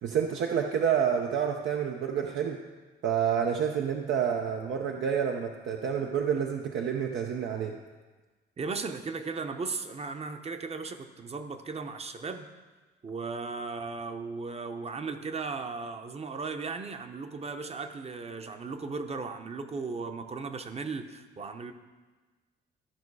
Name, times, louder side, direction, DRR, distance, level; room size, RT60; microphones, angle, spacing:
voice 1, 0.0-2.6 3.0-7.7, right 8 dB, 70° right, 2 dB, 0.7 m, -28 dB
voice 2, 8.6-12.5 13.0-21.7, right 4 dB, 30° right, 7 dB, 0.8 m, -36 dB
13.0 x 5.4 x 4.7 m, 1.3 s
cardioid pair, 90°, 20 cm